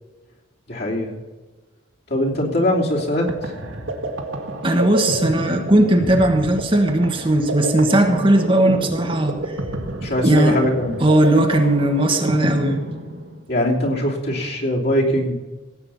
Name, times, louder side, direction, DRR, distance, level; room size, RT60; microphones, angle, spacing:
voice 1, 0.7-1.1 2.1-3.3 10.0-11.0 13.5-15.3, left 1 dB, 55° left, -2 dB, 3.0 m, -21 dB
sound 1, 2.7-13.5, right 1 dB, 85° right, 1.9 m, -28 dB
voice 2, 4.6-9.6 10.2-10.6 11.0-12.8, right 1 dB, 25° right, 4 dB, 1.3 m, -17 dB
17.0 x 8.8 x 5.6 m, 1.2 s
head